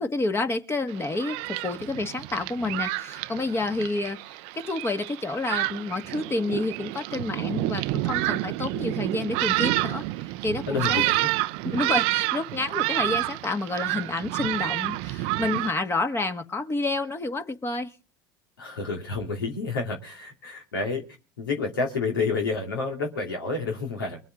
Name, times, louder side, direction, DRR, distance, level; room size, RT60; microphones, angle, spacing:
voice 1, 0.0-4.2 4.6-10.0 10.4-10.6 10.9-11.0 11.7-17.9, left 2 dB, 20° left, 1.7 m, -29 dB
Thunderstorm, 0.9-15.7, right 19 dB, 55° right, 0.5 m, -29 dB
voice 2, 10.7-11.3 18.6-21.0 21.4-24.2, left 4 dB, 75° left, 2.6 m, -29 dB
23.5 x 8.2 x 3.8 m
figure-of-eight pair, 65°, 12 cm